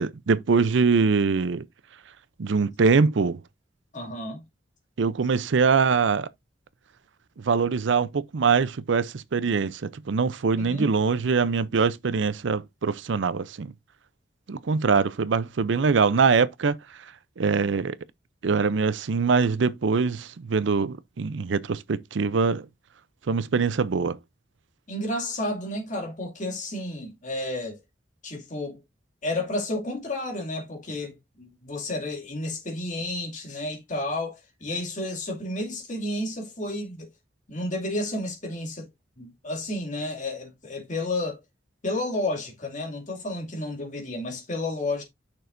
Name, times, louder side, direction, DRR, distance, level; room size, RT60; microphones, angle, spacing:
voice 1, 0.0-1.6 2.4-3.4 5.0-6.3 7.4-13.7 14.5-16.8 17.4-18.0 18.4-22.7 23.3-24.2, right 5 dB, 75° right, 0.5 m, -23 dB
voice 2, 3.9-4.4 10.6-10.9 24.9-27.8 28.2-28.8 29.2-37.1 37.5-38.9 39.2-41.4 41.8-45.0, left 1 dB, 45° left, 2.4 m, -31 dB
9.4 x 6.2 x 2.6 m
head